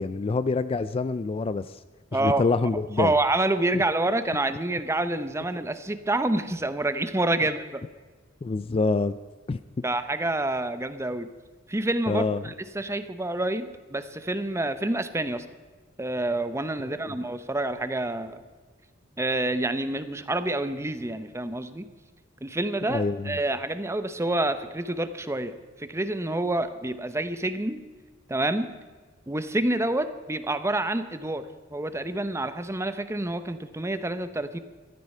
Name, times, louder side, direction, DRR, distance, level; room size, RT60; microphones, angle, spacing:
voice 1, 0.0-1.8 2.2-3.1 8.4-9.2 9.5-9.6 12.1-12.4 17.0-17.1 22.9-23.4, left 3 dB, 30° left, 13 dB, 0.3 m, -26 dB
voice 2, 2.1-2.4 3.0-7.8 9.8-11.3 11.7-15.4 16.0-18.4 19.2-21.9 22.4-27.8 28.3-28.7 29.3-34.6, right 2 dB, 15° right, 11 dB, 0.8 m, -28 dB
14.5 x 13.0 x 5.6 m, 1.4 s
head